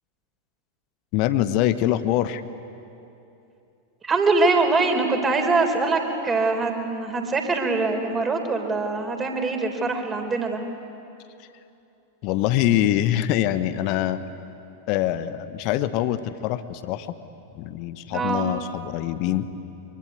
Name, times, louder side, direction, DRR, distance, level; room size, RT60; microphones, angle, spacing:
voice 1, 1.1-2.4 12.2-14.2 14.9-17.1 17.5-19.5, left 12 dB, 45° left, 12 dB, 1.1 m, -24 dB
voice 2, 4.0-10.6 18.1-18.5, right 3 dB, 20° right, 4 dB, 3.9 m, -23 dB
25.0 x 24.0 x 9.6 m, 2.8 s
figure-of-eight pair, 90°, 0 cm